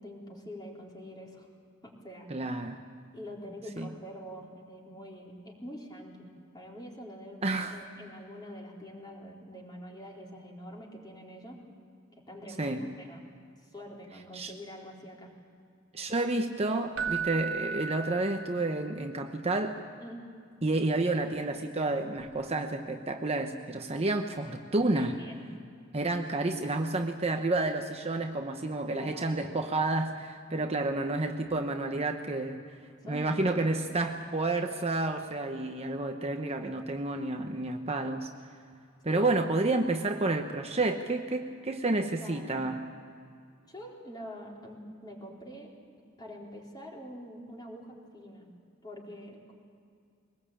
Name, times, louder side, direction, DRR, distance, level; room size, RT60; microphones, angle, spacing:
voice 1, 0.0-1.5 1.8-2.3 3.1-6.3 6.5-11.6 12.3-13.2 13.6-15.3 20.0-20.2 24.9-25.4 28.9-29.5 33.1-33.6 39.1-39.6 42.2-42.6 43.7-45.7 46.2-48.5 48.8-49.5, equal, 20° left, -2 dB, 3.9 m, -45 dB
voice 2, 2.3-2.8 3.8-3.9 7.4-7.7 12.6-12.8 14.3-14.5 15.9-19.8 20.6-25.2 25.9-32.6 33.1-38.3 39.0-42.8, right 2 dB, 30° right, 4 dB, 1.0 m, -30 dB
Keyboard (musical), 17.0-18.9 22.2-22.3, right 6 dB, 85° right, 1.1 m, -35 dB
22.5 x 20.0 x 8.7 m, 2.3 s
head